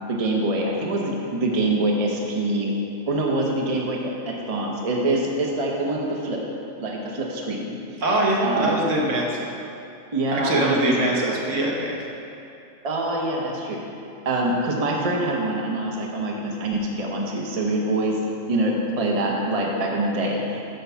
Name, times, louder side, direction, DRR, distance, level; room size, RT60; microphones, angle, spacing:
voice 1, 0.1-2.7 3.1-6.4 6.8-7.8 8.4-8.8 10.1-10.9 12.8-13.8 14.2-18.2 18.5-20.6, right 2 dB, 35° right, -1 dB, 0.8 m, -25 dB
voice 2, 8.0-9.3 10.3-12.0, right 1 dB, 75° right, -2 dB, 1.4 m, -23 dB
6.6 x 4.6 x 6.7 m, 2.7 s
omnidirectional pair, 1.3 m